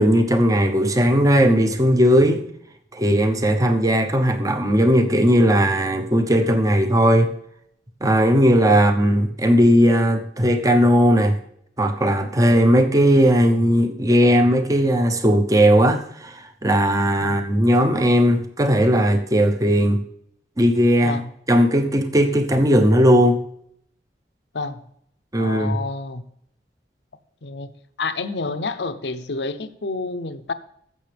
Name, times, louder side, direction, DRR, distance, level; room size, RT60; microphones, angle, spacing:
voice 1, 0.0-2.4 2.9-7.3 8.0-11.4 11.8-20.0 20.6-21.2 21.5-23.4 25.3-25.8, equal, 20° right, 7 dB, 0.7 m, -17 dB
voice 2, 25.4-26.2 27.4-27.7 28.0-30.5, left 3 dB, 70° left, 12 dB, 0.7 m, -29 dB
15.0 x 6.7 x 3.4 m, 0.69 s
head